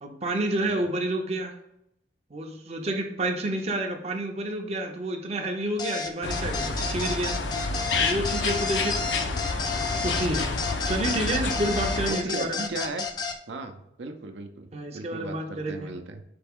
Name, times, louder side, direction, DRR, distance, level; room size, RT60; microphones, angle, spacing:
voice 1, 0.0-1.5 2.3-7.4 8.0-9.0 9.9-12.7 14.7-15.9, right 1 dB, 35° right, 3 dB, 0.5 m, -29 dB
sound 1, 5.8-13.4, left 5 dB, 25° left, 0.3 m, -31 dB
sound 2, 6.2-12.1, left 3 dB, 80° left, 0.5 m, -29 dB
voice 2, 12.1-13.0 13.5-16.2, right 2 dB, 80° right, 6 dB, 0.5 m, -37 dB
4.2 x 3.4 x 3.5 m, 0.80 s
head